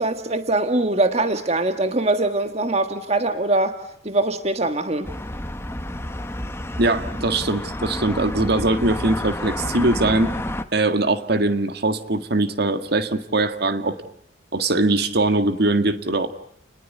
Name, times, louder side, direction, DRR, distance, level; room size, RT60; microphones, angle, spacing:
voice 1, 0.0-3.8 4.0-5.1, right 2 dB, 35° right, 8 dB, 1.6 m, -22 dB
sound 1, 5.0-10.6, left 1 dB, 15° left, 1.2 m, -30 dB
voice 2, 6.8-10.3 10.7-14.0 14.5-16.4, right 2 dB, 55° right, 9 dB, 1.9 m, -21 dB
30.0 x 20.5 x 9.5 m, 0.71 s
head